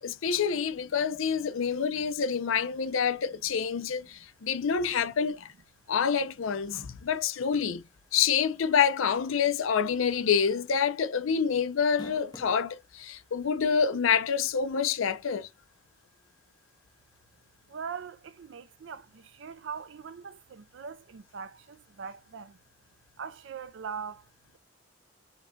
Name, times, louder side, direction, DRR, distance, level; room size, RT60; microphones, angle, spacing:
voice 1, 0.0-5.5 5.9-7.9 8.1-15.5, left 6 dB, 75° left, 0.5 m, -27 dB
sound 1, 10.2-10.3 10.6-10.7 11.7-12.6 13.4-13.5 15.1-15.2, left 2 dB, 20° left, 0.5 m, -45 dB
voice 2, 17.7-22.6 23.2-24.3, right 6 dB, 60° right, 0.4 m, -41 dB
5.3 x 2.2 x 3.6 m
head